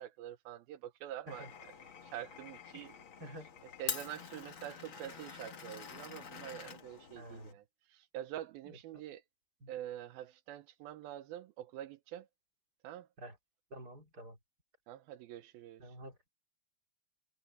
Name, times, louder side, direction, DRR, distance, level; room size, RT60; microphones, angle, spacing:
voice 1, 0.0-3.0 3.8-9.2 9.7-12.3 12.8-13.1 14.9-15.9, right 12 dB, 75° right, 2.5 m, -46 dB
Glass, 1.3-7.5, left 7 dB, 45° left, 1.7 m, -46 dB
voice 2, 3.2-3.5 7.1-7.6 8.6-8.8 9.6-9.7 13.2-13.3 13.7-14.4 15.8-16.3, right 1 dB, 25° right, 3.1 m, -49 dB
omnidirectional pair, 4.6 m